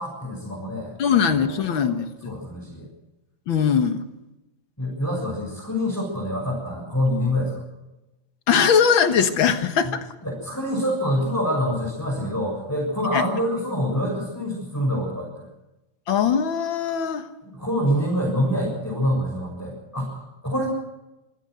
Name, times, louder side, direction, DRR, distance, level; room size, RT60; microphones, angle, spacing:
voice 1, 0.0-0.9 1.3-2.0 2.2-2.9 4.8-7.6 10.2-15.5 17.4-20.7, equal, 10° left, -5 dB, 7.0 m, -26 dB
voice 2, 1.0-2.4 3.5-4.0 8.5-10.1 13.1-13.3 16.1-17.3, left 7 dB, 90° left, 8 dB, 2.1 m, -21 dB
25.5 x 16.0 x 6.5 m, 0.98 s
omnidirectional pair, 2.1 m